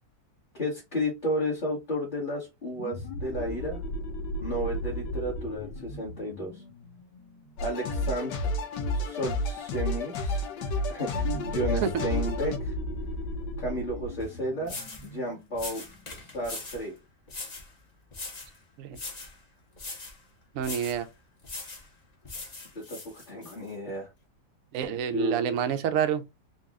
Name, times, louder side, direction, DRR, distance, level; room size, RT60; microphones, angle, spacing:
voice 1, 0.5-3.8 4.4-6.6 7.6-8.3 8.9-10.4 10.9-12.7 13.6-14.7 15.0-15.8 16.1-16.9 22.7-24.1 25.1-25.8, equal, 30° left, 1.1 m, -33 dB
sound 1, 2.7-8.1 11.1-16.4, left 1 dB, 85° left, 1.9 m, -37 dB
sound 2, 7.6-12.6, left 1 dB, 70° left, 1.4 m, -30 dB
sound 3, 14.2-14.3 14.6-15.1 15.5-16.8 17.3-17.7 18.1-18.6 18.9-19.4 19.8-20.2 20.6-21.0 21.4-21.9 22.2-23.5, left 3 dB, 50° left, 0.4 m, -40 dB
voice 2, 20.5-21.1 24.7-26.2, right 8 dB, 85° right, 0.7 m, -28 dB
3.9 x 2.3 x 3.6 m
omnidirectional pair, 2.0 m